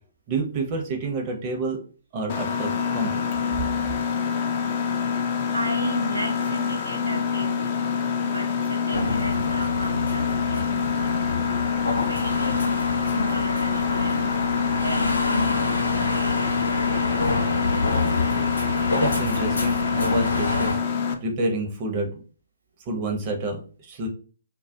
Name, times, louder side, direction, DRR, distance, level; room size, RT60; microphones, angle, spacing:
voice 1, 0.3-1.8 2.1-3.3 19.0-20.8 21.2-22.2 22.9-24.1, right 2 dB, 30° right, 2 dB, 0.7 m, -28 dB
Mechanisms, 2.3-21.1, left 6 dB, 40° left, 0.4 m, -26 dB
voice 2, 5.5-7.9 8.2-11.5 12.1-12.8 13.1-14.4 14.7-16.6 16.9-17.2, equal, 85° right, 0 dB, 0.8 m, -33 dB
sound 1, 8.9-20.7, left 2 dB, 75° left, 0.6 m, -28 dB
2.2 x 2.1 x 2.7 m, 0.40 s
figure-of-eight pair, 130°, 0 cm